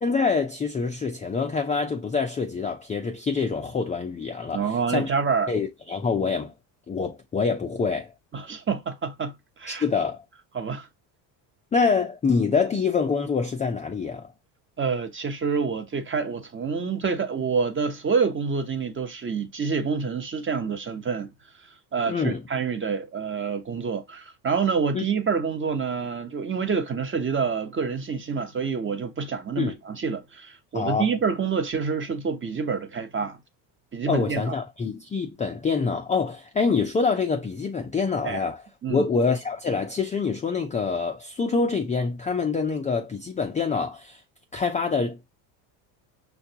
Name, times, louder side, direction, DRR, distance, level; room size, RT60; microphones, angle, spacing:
voice 1, 0.0-5.1 5.5-6.5 6.9-8.1 9.7-10.2 11.7-14.3 22.1-22.4 24.9-25.0 29.6-29.8 30.7-31.1 34.1-44.2 44.5-45.2, left 5 dB, 15° left, 0.4 m, -26 dB
voice 2, 4.5-5.5 8.3-9.3 9.6-9.8 10.5-10.9 14.8-21.3 21.9-33.4 33.9-34.4 38.2-38.4 38.8-39.0, right 5 dB, 25° right, 0.8 m, -27 dB
5.7 x 2.3 x 2.7 m
supercardioid pair, 95°, 48 cm